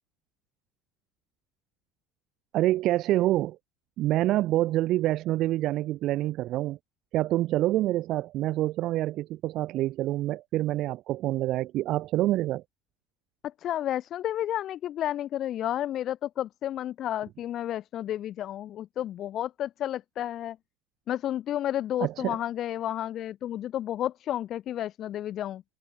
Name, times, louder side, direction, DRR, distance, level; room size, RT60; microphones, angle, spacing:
voice 1, 2.5-3.6 4.0-6.8 7.1-12.6 22.0-22.4, right 15 dB, 50° right, 1.6 m, -26 dB
voice 2, 13.6-20.6 21.1-25.6, left 12 dB, 45° left, 1.1 m, -31 dB
hypercardioid pair, 75°, 0 cm